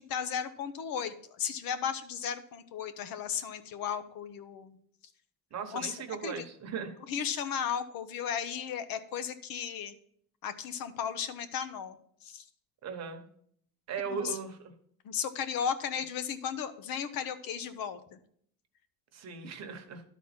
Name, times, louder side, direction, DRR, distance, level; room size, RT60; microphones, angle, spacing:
voice 1, 0.0-4.8 5.7-6.0 6.2-6.4 7.1-9.9 10.4-12.4 14.1-14.4 15.0-18.0, left 7 dB, 65° left, 11 dB, 0.8 m, -35 dB
voice 2, 5.5-7.0 12.8-13.2 13.9-14.7 19.1-20.0, right 6 dB, 45° right, 6 dB, 1.1 m, -38 dB
11.5 x 4.1 x 5.8 m, 0.64 s
cardioid pair, 165°, 38 cm